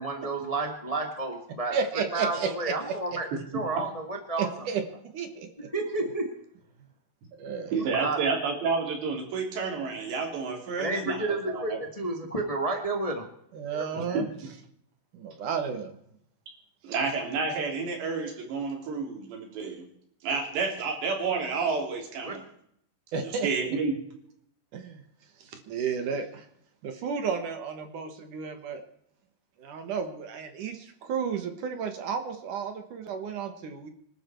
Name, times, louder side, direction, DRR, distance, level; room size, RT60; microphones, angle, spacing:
voice 1, 0.0-3.3 3.5-4.5 5.7-6.4 8.0-8.2 10.8-13.2 13.7-14.2 22.2-22.4, right 2 dB, 40° left, 3 dB, 0.4 m, -31 dB
voice 2, 1.7-3.0 4.4-4.8 5.1-5.7 7.4-7.8 13.5-14.3 15.1-16.0 23.1-23.5 24.7-25.0 25.4-26.5 26.8-28.8 29.6-33.9, right 6 dB, 60° right, 7 dB, 2.4 m, -32 dB
voice 3, 7.7-11.8 13.9-14.2 16.8-19.8 20.2-22.4 23.4-24.0, right 4 dB, 80° right, 1 dB, 5.7 m, -30 dB
25.5 x 12.5 x 4.5 m, 0.70 s
omnidirectional pair, 4.9 m